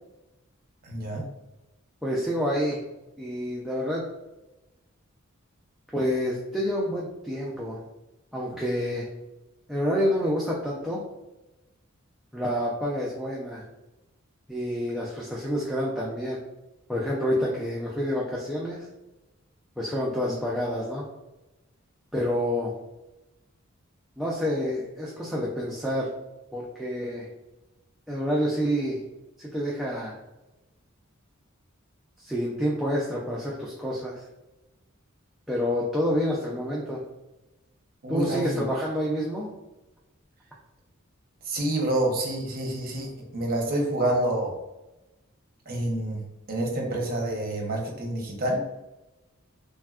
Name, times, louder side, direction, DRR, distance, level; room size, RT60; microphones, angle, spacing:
voice 1, 0.8-1.2 20.3-20.4 38.0-38.6 41.5-44.5 45.7-46.2 46.5-48.6, right 1 dB, 45° right, 0 dB, 0.7 m, -28 dB
voice 2, 2.0-2.8 3.2-4.0 5.9-7.8 8.3-9.1 9.7-11.0 12.3-13.6 14.5-16.4 16.9-18.9 19.8-21.0 22.1-22.7 24.2-26.1 26.5-27.3 28.1-29.0 29.4-30.2 32.2-34.3 35.5-37.0 38.1-39.5, equal, ahead, -5 dB, 0.3 m, -28 dB
3.4 x 2.2 x 2.3 m, 1.0 s
head